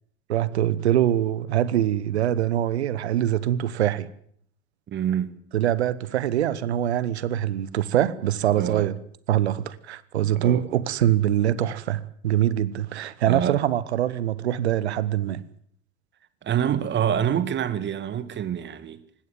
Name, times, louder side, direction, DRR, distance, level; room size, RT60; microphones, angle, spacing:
voice 1, 0.3-4.1 5.5-9.0 9.3-15.4, right 11 dB, 70° right, 1.0 m, -24 dB
voice 2, 4.9-5.3 8.6-8.9 10.3-10.6 13.3-13.6 16.4-19.0, right 9 dB, 35° right, 1.9 m, -26 dB
20.0 x 16.0 x 9.1 m
figure-of-eight pair, 70°, 34 cm